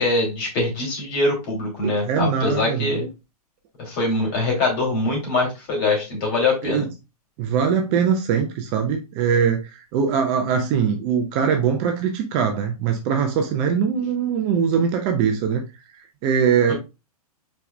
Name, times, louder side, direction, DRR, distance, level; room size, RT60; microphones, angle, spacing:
voice 1, 0.0-3.1 3.8-6.8 16.7-16.8, left 2 dB, 35° left, 0 dB, 2.8 m, -23 dB
voice 2, 1.8-2.9 6.6-6.9 7.4-15.6 16.2-16.7, right 7 dB, 25° right, 4 dB, 0.6 m, -22 dB
4.7 x 4.6 x 2.2 m, 0.26 s
figure-of-eight pair, 115°, 20 cm